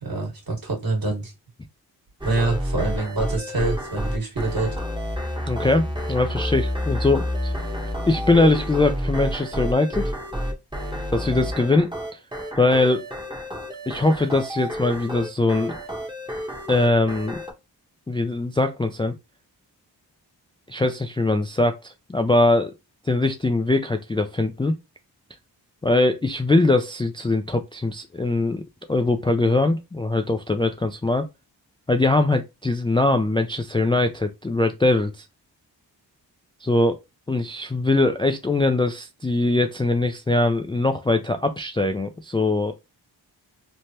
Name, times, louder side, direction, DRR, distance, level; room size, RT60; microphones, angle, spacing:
voice 1, 0.0-1.3 2.2-4.8, right 2 dB, 55° right, 1.6 m, -26 dB
sound 1, 2.2-17.5, equal, 10° right, 0.9 m, -29 dB
voice 2, 5.5-5.8 6.1-7.5 8.1-10.1 11.1-12.2 12.6-13.1 13.9-15.7 16.7-17.4 18.1-19.1 20.7-22.7 23.1-24.7 25.8-28.6 28.9-31.2 31.9-35.2 36.6-37.0 37.3-42.7, left 2 dB, 15° left, 0.3 m, -21 dB
3.2 x 2.1 x 2.8 m
cardioid pair, 40°, 43 cm